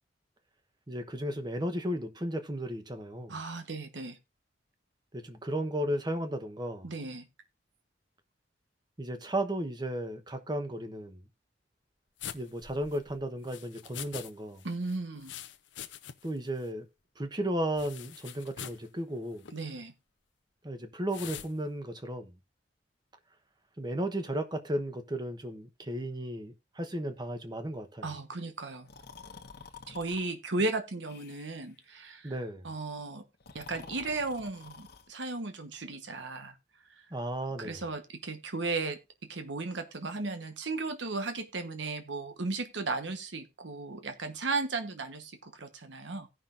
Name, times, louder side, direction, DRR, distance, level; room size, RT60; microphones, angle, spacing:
voice 1, 0.9-3.4 5.1-6.9 9.0-11.2 12.3-14.6 16.2-16.9 17.2-19.4 20.6-22.3 23.8-28.1 32.2-32.7 37.1-37.8, right 1 dB, 25° right, 1.0 m, -34 dB
voice 2, 3.3-4.2 6.8-7.3 14.6-15.3 19.5-19.9 28.0-28.9 29.9-32.4 32.6-33.2 33.5-36.5 36.9-37.0 37.6-39.0 39.3-46.3, right 3 dB, 75° right, 1.2 m, -35 dB
sound 1, 12.2-14.3 14.6-16.4 16.6-16.7 17.8-18.9 19.4-19.6 21.1-21.5, left 10 dB, 80° left, 0.7 m, -44 dB
Breathing, 28.8-30.3 31.0-31.7 33.3-35.1, left 4 dB, 60° left, 1.1 m, -49 dB
17.0 x 5.8 x 2.6 m
head